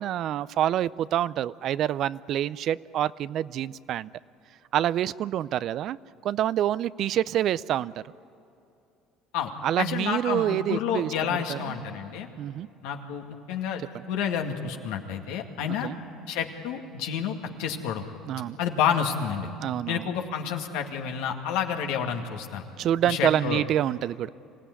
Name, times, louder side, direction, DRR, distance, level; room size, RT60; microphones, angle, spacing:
voice 1, 0.0-4.1 4.7-6.0 6.2-7.9 9.6-11.1 11.5-11.8 12.4-12.7 15.8-16.0 18.3-18.6 19.6-20.0 22.8-24.3, right 11 dB, 60° right, 18 dB, 0.5 m, -27 dB
voice 2, 9.8-12.3 12.8-13.8 14.1-15.9 16.3-18.1 18.6-19.5 19.9-22.6 23.0-23.6, left 8 dB, 80° left, 3 dB, 2.1 m, -29 dB
25.5 x 16.5 x 9.8 m, 2.7 s
supercardioid pair, 80°, 0 cm